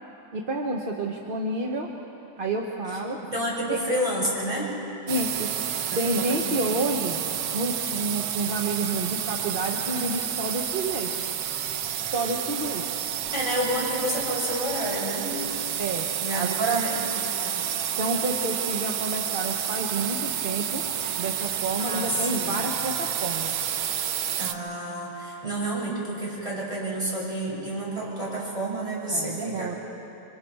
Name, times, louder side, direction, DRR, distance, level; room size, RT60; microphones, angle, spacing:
voice 1, 0.3-1.9 2.4-3.2 3.7-3.8 5.1-5.5 5.9-7.2 7.5-11.1 11.9-12.8 15.8-16.1 16.3-16.9 18.0-20.8 21.2-23.6 29.1-29.8, right 2 dB, 35° right, 0 dB, 1.0 m, -29 dB
voice 2, 3.2-4.7 5.9-6.6 13.3-15.4 16.2-17.0 17.4-17.5 21.8-22.1 22.4-22.6 24.4-29.8, right 1 dB, 15° right, -6 dB, 7.2 m, -30 dB
sound 1, 5.1-24.5, right 9 dB, 80° right, 1.6 m, -30 dB
29.0 x 25.0 x 4.7 m, 2.9 s
omnidirectional pair, 2.2 m